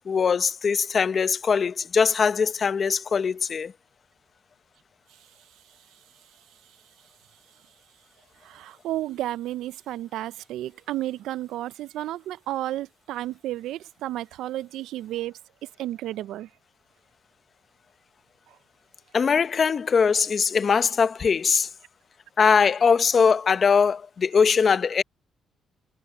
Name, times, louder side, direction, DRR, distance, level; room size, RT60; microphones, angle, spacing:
voice 1, 0.1-3.7 19.1-21.7 22.4-25.0, left 6 dB, 45° left, 0.9 m, -21 dB
voice 2, 8.4-15.3 15.8-16.5, right 14 dB, 85° right, 0.4 m, -32 dB
cardioid pair, 90°, 0 cm